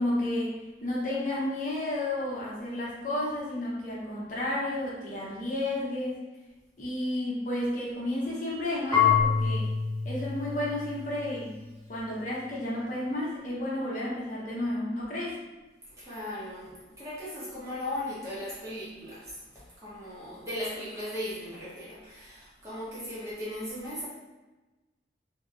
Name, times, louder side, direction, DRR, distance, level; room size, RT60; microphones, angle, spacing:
voice 1, 0.0-6.3 6.8-9.7 10.0-11.6 11.9-15.4, left 1 dB, 45° left, -5 dB, 0.7 m, -32 dB
Marimba xylophone / Wood, 8.9-11.8, left 7 dB, 30° left, 1.2 m, -27 dB
voice 2, 16.0-19.4 19.8-24.1, left 1 dB, 15° right, -8 dB, 0.9 m, -37 dB
2.7 x 2.7 x 2.4 m, 1.1 s
head